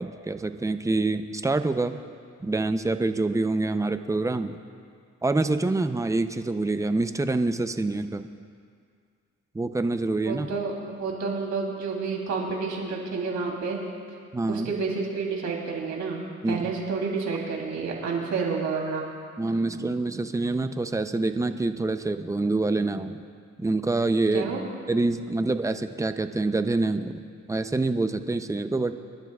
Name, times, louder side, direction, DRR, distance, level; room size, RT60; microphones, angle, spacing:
voice 1, 0.0-2.0 2.4-4.6 5.2-8.3 9.5-10.5 14.3-14.7 16.4-16.7 19.4-23.2 23.6-24.5 24.9-28.9, right 2 dB, 10° right, 9 dB, 0.6 m, -26 dB
voice 2, 10.2-13.8 14.5-16.2 16.5-19.0 24.3-24.6, right 4 dB, 70° right, -1 dB, 3.2 m, -29 dB
26.5 x 11.5 x 2.4 m, 2.1 s
cardioid pair, 90°, 30 cm